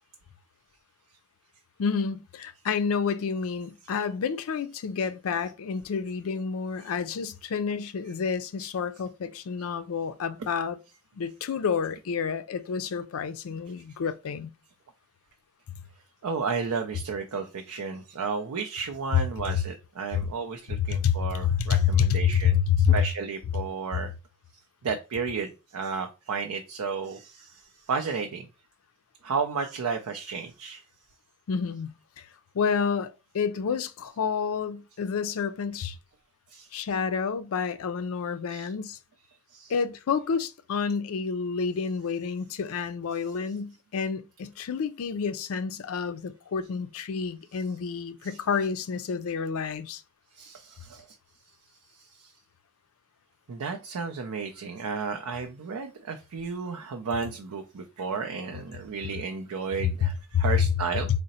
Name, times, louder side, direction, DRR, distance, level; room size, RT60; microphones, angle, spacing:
voice 1, 1.8-10.8 11.1-14.5 19.1-19.2 20.1-20.2 20.8-21.2 21.4-23.0 31.5-32.3 32.5-36.0 36.7-39.0 39.7-50.0 60.0-60.5, left 6 dB, 65° left, 0.4 m, -28 dB
voice 2, 16.2-24.1 24.8-28.5 29.2-30.8 36.5-36.9 38.5-38.7 39.5-39.7 50.3-51.1 51.9-52.3 53.5-61.1, right 5 dB, 90° right, 0.5 m, -33 dB
3.8 x 2.1 x 4.0 m
head